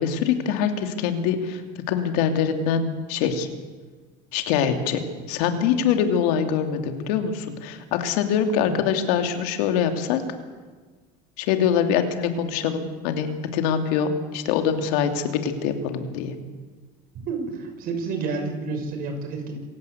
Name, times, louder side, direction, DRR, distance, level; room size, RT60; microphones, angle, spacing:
voice 1, 0.0-1.6 1.9-3.5 4.3-10.2 11.4-16.3, left 7 dB, 80° left, 6 dB, 2.8 m, -24 dB
voice 2, 17.3-19.6, right 4 dB, 50° right, 5 dB, 6.1 m, -30 dB
26.5 x 16.0 x 8.2 m, 1.4 s
cardioid pair, 140°, 20 cm